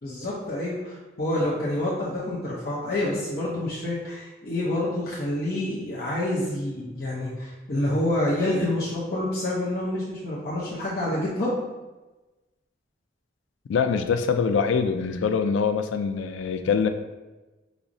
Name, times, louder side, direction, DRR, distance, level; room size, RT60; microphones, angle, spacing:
voice 1, 0.0-11.6, left 1 dB, 55° left, -7 dB, 0.6 m, -27 dB
voice 2, 13.7-16.9, left 6 dB, 90° left, 8 dB, 0.3 m, -24 dB
5.8 x 2.0 x 2.6 m, 1.1 s
head